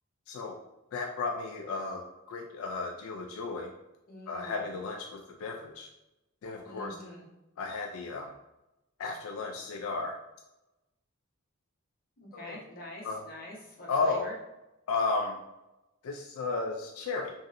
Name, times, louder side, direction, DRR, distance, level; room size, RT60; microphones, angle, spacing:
voice 1, 0.3-0.6 0.9-3.7 4.3-5.9 6.4-7.0 7.6-8.3 9.0-10.2 12.3-12.6 13.0-13.2 13.9-14.3 14.9-15.4 16.0-17.3, left 3 dB, 85° left, 2 dB, 0.3 m, -34 dB
voice 2, 4.1-4.7 6.6-7.3 12.2-14.3, left 1 dB, 45° left, -3 dB, 0.8 m, -45 dB
3.0 x 2.6 x 2.5 m, 0.96 s
head